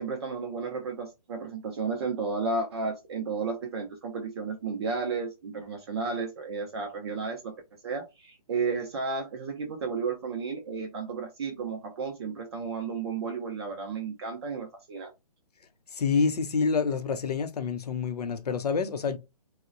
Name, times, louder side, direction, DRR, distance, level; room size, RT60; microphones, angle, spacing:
voice 1, 0.0-7.5 7.8-15.1, right 4 dB, 40° right, 0.5 m, -33 dB
voice 2, 15.9-19.2, left 5 dB, 75° left, 0.6 m, -27 dB
2.9 x 2.1 x 2.5 m
hypercardioid pair, 145°, 20 cm